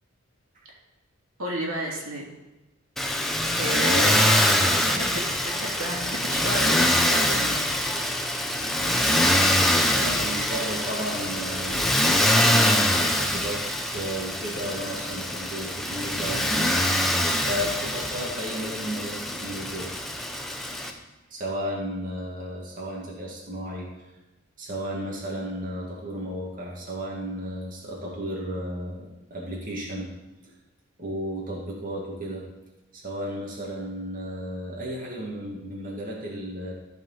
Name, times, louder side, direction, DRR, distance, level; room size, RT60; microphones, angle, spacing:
voice 1, 1.4-2.3 3.6-4.2 4.9-7.7, right 1 dB, 90° right, -3 dB, 2.8 m, -32 dB
Motor vehicle (road), 3.0-20.9, left 1 dB, ahead, 0.8 m, -24 dB
voice 2, 9.9-11.9 12.4-16.7 17.4-19.9 21.3-23.9 24.6-30.1 30.4-30.5 31.0-32.5 32.9-36.8, equal, 40° right, -3 dB, 2.1 m, -33 dB
14.0 x 4.9 x 5.7 m, 1.1 s
head